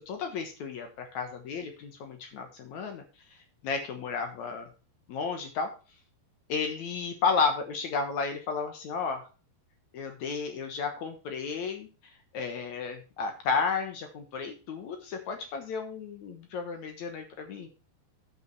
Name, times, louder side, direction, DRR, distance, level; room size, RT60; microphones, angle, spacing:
voice 1, 0.0-3.0 3.6-4.7 5.1-5.7 6.5-9.2 9.9-11.9 12.3-17.7, left 5 dB, 70° left, 5 dB, 1.8 m, -32 dB
10.5 x 5.8 x 4.5 m, 0.33 s
omnidirectional pair, 4.9 m